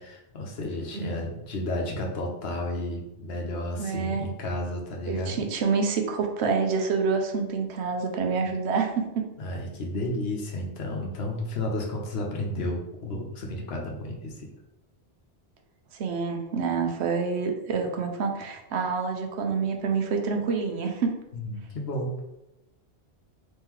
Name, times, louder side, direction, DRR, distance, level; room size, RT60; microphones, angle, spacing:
voice 1, 0.1-5.4 9.4-14.5 21.3-22.2, left 1 dB, 70° left, 0 dB, 1.0 m, -32 dB
voice 2, 3.8-4.3 5.1-9.3 15.9-21.1, right 5 dB, 80° right, 3 dB, 0.9 m, -27 dB
3.2 x 3.0 x 3.6 m, 0.91 s
omnidirectional pair, 1.1 m